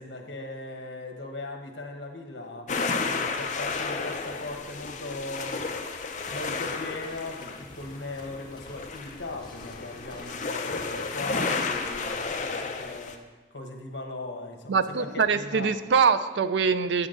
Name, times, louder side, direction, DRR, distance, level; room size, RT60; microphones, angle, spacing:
voice 1, 0.0-5.7 6.3-15.7, left 2 dB, 75° left, 3 dB, 1.3 m, -39 dB
sound 1, 2.7-13.2, left 4 dB, 40° left, 0.6 m, -32 dB
sound 2, 6.3-12.4, left 1 dB, 25° left, 1.0 m, -49 dB
voice 2, 14.7-17.1, right 5 dB, 75° right, 12 dB, 0.4 m, -23 dB
9.4 x 8.3 x 3.9 m, 1.3 s
head